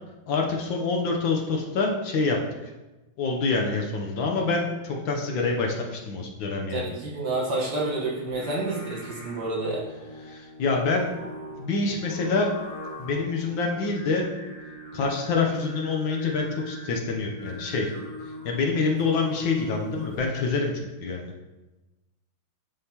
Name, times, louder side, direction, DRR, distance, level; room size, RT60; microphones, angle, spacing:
voice 1, 0.3-2.7 3.2-6.8 10.2-11.1 11.6-12.5 13.0-14.3 14.9-17.9 18.4-20.7 21.0-21.3, left 4 dB, 70° left, 1 dB, 1.4 m, -26 dB
voice 2, 6.7-9.9, right 2 dB, 55° right, -4 dB, 1.7 m, -29 dB
Singing, 8.2-20.4, left 1 dB, 40° left, 0.9 m, -41 dB
11.0 x 3.9 x 2.8 m, 1.1 s
omnidirectional pair, 2.3 m